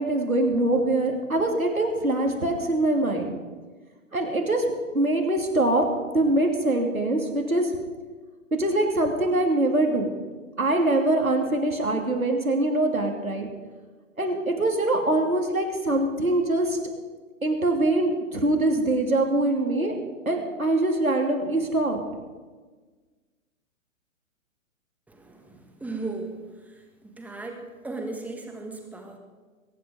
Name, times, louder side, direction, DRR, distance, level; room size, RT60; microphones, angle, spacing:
voice 1, 0.0-3.4 4.1-4.6 4.9-5.8 6.1-7.7 8.6-10.1 10.6-13.5 14.2-16.8 17.4-19.9 20.2-22.0, right 2 dB, 85° right, 2 dB, 3.1 m, -23 dB
voice 2, 25.1-26.4 26.6-26.7 27.0-29.2, right 3 dB, 5° right, 3 dB, 1.6 m, -36 dB
22.0 x 10.5 x 5.2 m, 1.4 s
figure-of-eight pair, 120°, 41 cm